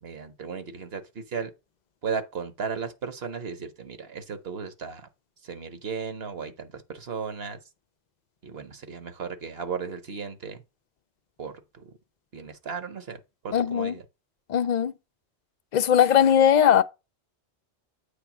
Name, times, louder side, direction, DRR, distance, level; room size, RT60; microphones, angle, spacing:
voice 1, 0.0-1.5 2.0-5.1 5.4-7.6 8.4-10.6 11.4-11.9 12.3-14.0, right 6 dB, 65° right, 1.2 m, -35 dB
voice 2, 13.5-13.9 14.5-14.9 15.7-16.8, left 9 dB, 55° left, 0.5 m, -19 dB
8.2 x 3.4 x 6.0 m
omnidirectional pair, 1.1 m